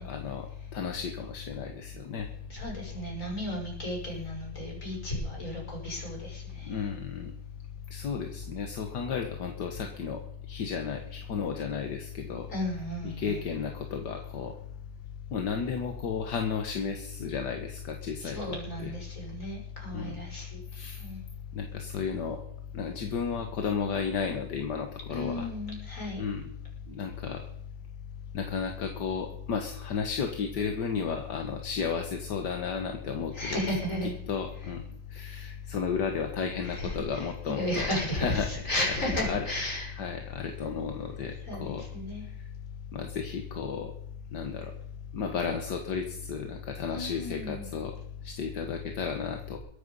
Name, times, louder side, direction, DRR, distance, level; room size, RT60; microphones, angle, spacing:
voice 1, 0.0-2.3 6.6-7.3 7.9-10.2 10.5-12.5 13.0-14.6 15.3-18.4 18.8-18.9 19.9-20.2 20.7-21.0 21.5-22.4 22.7-25.5 26.2-26.4 26.9-27.5 28.3-33.6 34.3-34.8 35.1-37.9 38.1-38.5 39.2-39.5 40.0-41.9 42.4-42.5 42.9-43.9 44.3-44.7 45.1-48.0 48.2-49.6, left 6 dB, 75° left, 5 dB, 1.9 m, -33 dB
voice 2, 2.5-6.4 12.5-13.4 18.2-20.5 21.0-21.2 25.1-26.2 33.3-34.1 34.6-34.7 36.6-39.9 41.5-42.2 46.9-47.7, left 1 dB, 45° left, -1 dB, 6.5 m, -33 dB
22.0 x 9.1 x 5.5 m, 0.78 s
omnidirectional pair, 1.9 m